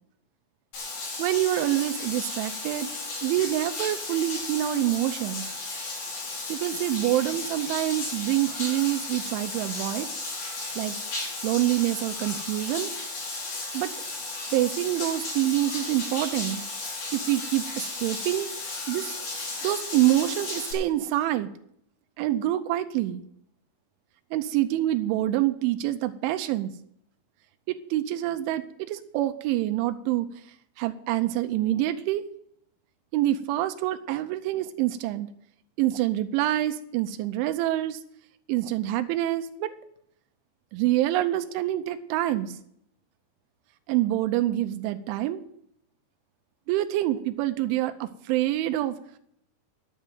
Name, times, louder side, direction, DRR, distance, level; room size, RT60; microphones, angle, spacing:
Bathtub (filling or washing), 0.7-20.7, left 3 dB, 70° left, 7.0 m, -34 dB
voice 1, 1.2-2.9 3.2-5.5 6.5-10.1 10.8-11.0 11.4-12.9 13.7-13.9 14.5-16.6 17.1-18.5 18.9-19.1 19.6-21.5 22.2-23.2 24.3-26.7 27.7-30.3 30.8-32.2 33.1-35.3 35.8-38.0 38.5-39.7 40.7-42.6 43.9-45.4 46.7-49.0, right 14 dB, 90° right, 9 dB, 3.2 m, -26 dB
11.0 x 7.5 x 9.1 m, 0.70 s
omnidirectional pair, 5.3 m